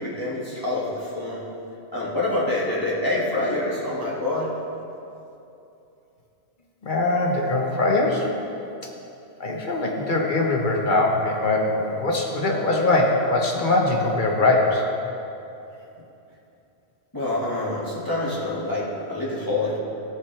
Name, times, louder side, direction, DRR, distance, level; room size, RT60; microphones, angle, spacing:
voice 1, 0.0-1.4 1.9-4.5 17.1-19.8, left 2 dB, 15° left, -8 dB, 2.3 m, -26 dB
voice 2, 6.8-8.3 9.4-14.8, left 2 dB, 45° left, 0 dB, 1.5 m, -22 dB
16.5 x 9.4 x 3.5 m, 2.8 s
omnidirectional pair, 1.2 m